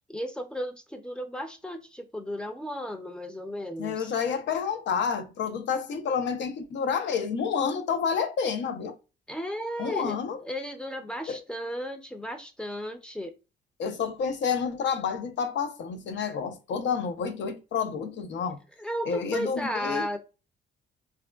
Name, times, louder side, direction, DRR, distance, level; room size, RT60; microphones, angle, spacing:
voice 1, 0.1-4.1 9.3-13.3 18.8-20.2, equal, 5° left, 0.5 m, -34 dB
voice 2, 3.8-9.0 9.8-10.4 11.3-11.4 13.8-18.6 19.1-20.1, left 6 dB, 65° left, 0.6 m, -29 dB
3.4 x 2.2 x 2.2 m
cardioid pair, 90°, 20 cm